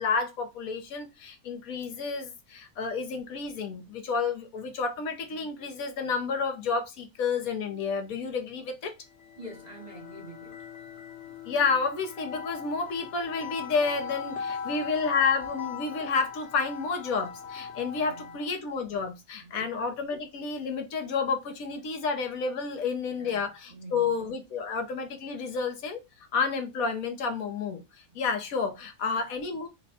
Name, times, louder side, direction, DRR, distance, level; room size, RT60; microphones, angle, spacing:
voice 1, 0.0-8.9 11.4-29.7, left 5 dB, 70° left, 1.2 m, -30 dB
sound 1, 9.1-18.6, left 6 dB, 45° left, 1.2 m, -40 dB
voice 2, 9.4-10.6 18.0-18.3 19.4-19.7 23.2-23.4 23.7-24.0, right 1 dB, 35° right, 0.8 m, -45 dB
4.1 x 2.2 x 4.1 m
omnidirectional pair, 1.6 m